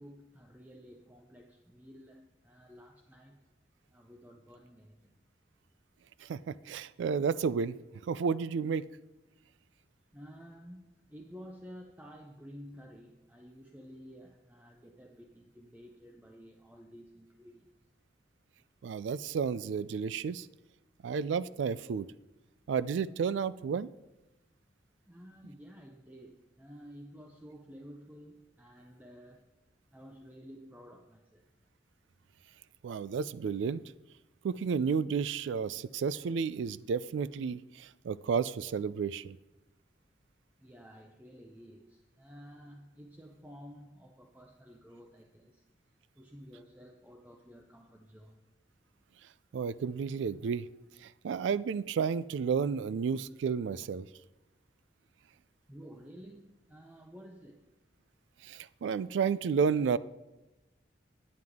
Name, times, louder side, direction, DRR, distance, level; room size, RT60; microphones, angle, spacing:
voice 1, 0.0-3.4 3.9-5.1 9.2-9.4 10.1-17.7 20.8-20.9 25.1-29.5 29.9-31.5 40.6-45.6 46.2-48.4 55.7-57.7, equal, 10° right, 2 dB, 0.5 m, -52 dB
voice 2, 6.2-7.7 8.1-8.9 18.8-20.5 21.0-22.1 22.7-23.9 32.8-33.8 34.4-39.4 49.5-50.7 51.0-54.1 58.4-60.0, right 6 dB, 80° right, 18 dB, 0.3 m, -32 dB
9.5 x 9.3 x 3.6 m, 1.0 s
head